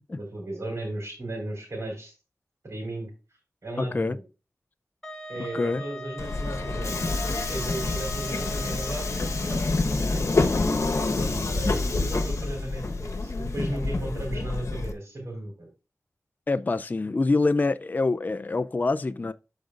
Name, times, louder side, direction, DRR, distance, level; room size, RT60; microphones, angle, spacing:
voice 1, 0.1-2.1 2.6-3.1 3.6-4.2 5.3-7.1 7.4-10.3 11.2-15.7, right 1 dB, 55° right, 4.3 m, -35 dB
voice 2, 3.8-4.2 5.5-5.8 16.5-19.3, left 3 dB, 30° left, 0.4 m, -25 dB
Wind instrument woodwind instrument, 5.0-9.7, equal, 10° left, 1.2 m, -40 dB
Subway metro underground, 6.2-14.9, left 3 dB, 60° left, 1.1 m, -27 dB
13.0 x 5.1 x 2.5 m
wide cardioid pair, 95°, 6 cm